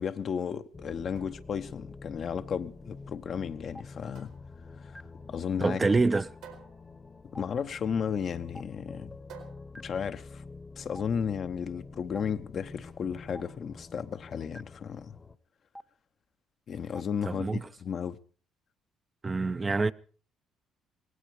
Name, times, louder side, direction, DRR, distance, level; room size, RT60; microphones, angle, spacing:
voice 1, 0.0-4.3 4.8-5.0 5.3-5.8 7.3-9.2 9.7-10.4 10.8-15.1 16.7-18.2, left 7 dB, 55° left, 1.0 m, -34 dB
sound 1, 0.7-15.4, left 3 dB, 30° left, 1.2 m, -47 dB
sound 2, 1.2-10.9, right 8 dB, 75° right, 3.8 m, -56 dB
Stream, 3.7-3.8 4.9-5.0 6.1-6.2 7.3-7.4 8.5-8.6 9.7-9.8 10.9-11.0 12.1-12.2 13.3-13.4 14.5-14.6 15.7-15.8 16.9-17.0, equal, ahead, 0.7 m, -46 dB
voice 2, 5.6-6.3 17.2-17.7 19.2-19.9, right 3 dB, 25° right, 0.7 m, -26 dB
18.0 x 16.0 x 4.8 m
hypercardioid pair, 55°, 0 cm